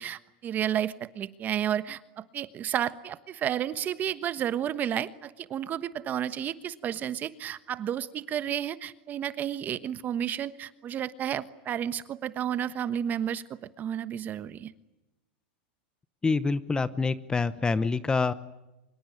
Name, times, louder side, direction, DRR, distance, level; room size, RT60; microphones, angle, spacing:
voice 1, 0.0-14.7, right 10 dB, 30° right, 14 dB, 1.2 m, -32 dB
voice 2, 16.2-18.3, left 4 dB, 15° left, 16 dB, 0.9 m, -26 dB
25.0 x 22.5 x 10.0 m, 0.95 s
supercardioid pair, 130°, 6 cm